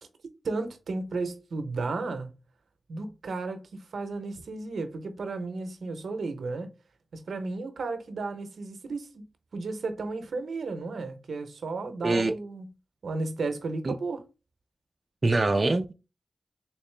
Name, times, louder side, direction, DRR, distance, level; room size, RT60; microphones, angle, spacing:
voice 1, 0.4-2.3 2.9-6.7 7.1-9.2 9.5-12.7 13.0-14.3, right 3 dB, 80° right, 0.6 m, -34 dB
voice 2, 12.0-12.3 13.9-14.0 15.2-15.9, right 2 dB, 45° right, 0.4 m, -24 dB
3.6 x 3.0 x 3.2 m
cardioid pair, 45°, 0 cm